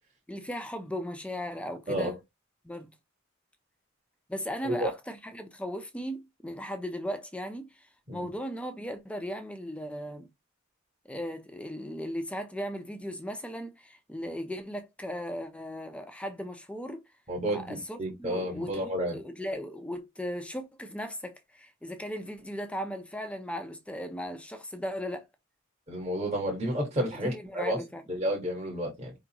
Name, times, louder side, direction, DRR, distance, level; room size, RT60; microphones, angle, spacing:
voice 1, 0.3-2.2 2.6-2.9 4.3-10.3 11.0-17.0 17.5-18.8 19.1-25.3 27.1-28.0, equal, 5° left, 0.6 m, -37 dB
voice 2, 17.3-19.2 25.9-27.8 28.1-29.2, equal, 35° right, 1.6 m, -31 dB
4.9 x 3.7 x 2.9 m
head